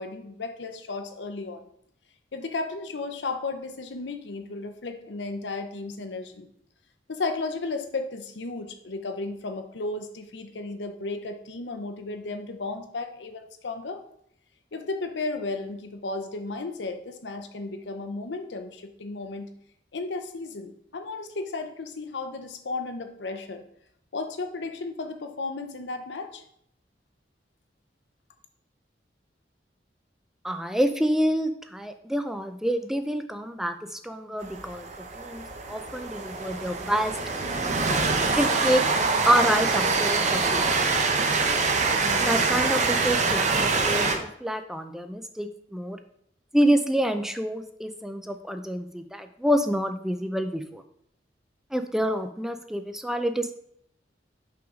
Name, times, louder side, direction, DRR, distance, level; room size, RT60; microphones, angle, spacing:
voice 1, 0.0-1.6 2.3-6.5 7.1-14.0 14.7-19.5 19.9-23.6 24.1-26.4, left 3 dB, 80° left, 7 dB, 0.7 m, -34 dB
voice 2, 30.4-34.9 35.1-37.1 38.4-38.8 39.3-40.7 42.2-43.5 43.8-46.0 46.5-50.8 51.7-53.5, equal, 5° right, 8 dB, 0.3 m, -27 dB
Train, 34.4-44.2, right 4 dB, 40° right, 0.7 m, -25 dB
5.7 x 3.9 x 5.0 m, 0.70 s
head